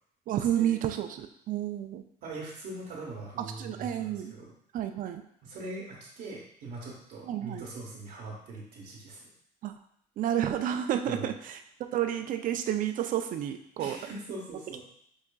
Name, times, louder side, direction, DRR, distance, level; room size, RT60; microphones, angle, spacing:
voice 1, 0.3-2.0 3.4-4.3 4.7-5.2 7.2-7.7 9.6-9.7 10.2-11.6 11.9-14.0, right 10 dB, 55° right, 7 dB, 0.4 m, -30 dB
voice 2, 2.2-4.5 5.4-9.3 11.0-11.3 13.8-14.8, right 2 dB, 75° right, -6 dB, 0.9 m, -41 dB
5.4 x 2.4 x 2.2 m, 0.68 s
cardioid pair, 110°, 17 cm